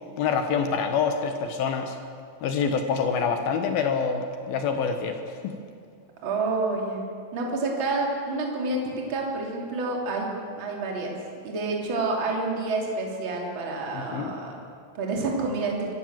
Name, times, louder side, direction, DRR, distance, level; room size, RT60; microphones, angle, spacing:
voice 1, 0.2-2.0 2.4-5.5 13.9-14.3, left 6 dB, 70° left, 6 dB, 2.4 m, -26 dB
voice 2, 6.2-7.0 7.3-11.2 11.4-14.6 14.9-15.7, right 3 dB, 30° right, -1 dB, 3.0 m, -28 dB
24.5 x 15.5 x 7.5 m, 2.3 s
omnidirectional pair, 5.6 m